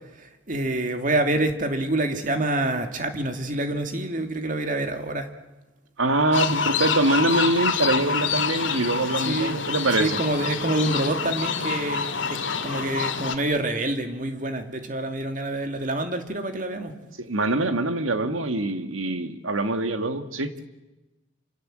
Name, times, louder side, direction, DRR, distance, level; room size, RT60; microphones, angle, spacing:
voice 1, 0.2-5.3 9.2-9.6 10.0-16.9, right 2 dB, 40° right, 6 dB, 2.5 m, -27 dB
voice 2, 6.0-10.2 17.2-20.5, right 2 dB, 90° right, 9 dB, 2.0 m, -24 dB
sound 1, 6.3-13.3, left 5 dB, 70° left, 2.3 m, -27 dB
29.0 x 26.0 x 7.7 m, 1.1 s
head